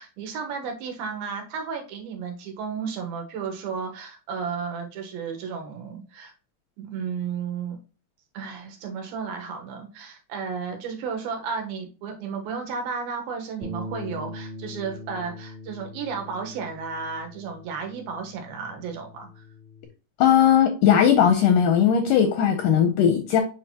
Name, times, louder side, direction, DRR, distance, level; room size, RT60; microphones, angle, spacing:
voice 1, 0.0-6.3 6.8-7.8 8.3-19.4, right 5 dB, 80° right, 3 dB, 2.9 m, -33 dB
Bass guitar, 13.6-19.9, left 1 dB, 50° right, 1.4 m, -41 dB
voice 2, 20.2-23.4, left 8 dB, 80° left, 5 dB, 1.9 m, -18 dB
7.4 x 4.5 x 2.9 m, 0.35 s
omnidirectional pair, 4.4 m